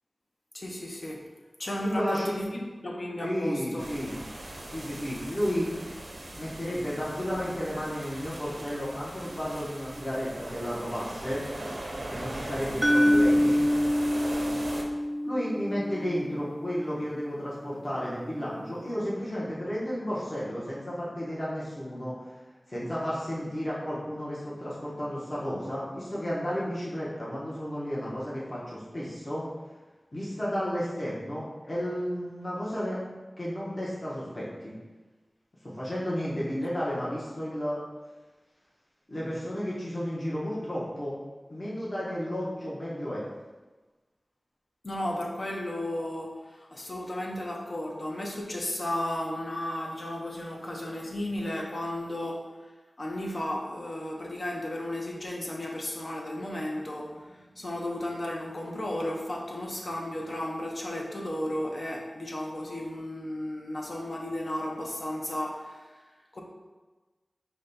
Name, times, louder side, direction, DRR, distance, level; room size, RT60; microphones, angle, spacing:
voice 1, 0.5-1.3 1.6-3.9 44.8-52.5 53.0-65.8 66.3-66.4, left 1 dB, 55° left, -1 dB, 0.7 m, -34 dB
voice 2, 1.8-2.5 3.2-4.1 4.7-5.7 6.3-11.4 12.1-13.6 15.2-22.1 22.7-29.4 30.1-33.0 33.4-34.7 35.6-37.8 39.1-41.1 41.5-43.2, equal, 35° left, -8 dB, 1.0 m, -32 dB
sound 1, 3.8-14.8, right 1 dB, 70° right, 0.6 m, -39 dB
sound 2, 12.8-16.9, equal, 15° right, 0.5 m, -25 dB
5.0 x 2.3 x 4.0 m, 1.2 s
wide cardioid pair, 75°, 0 cm